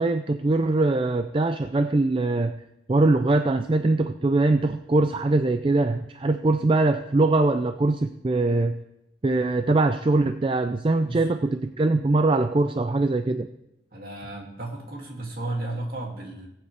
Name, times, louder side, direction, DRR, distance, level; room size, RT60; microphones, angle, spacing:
voice 1, 0.0-2.5 2.9-8.7 9.2-13.5, right 2 dB, 30° right, 9 dB, 0.4 m, -22 dB
voice 2, 13.9-16.5, right 2 dB, 55° right, -1 dB, 2.5 m, -34 dB
20.0 x 8.6 x 3.4 m, 0.84 s
head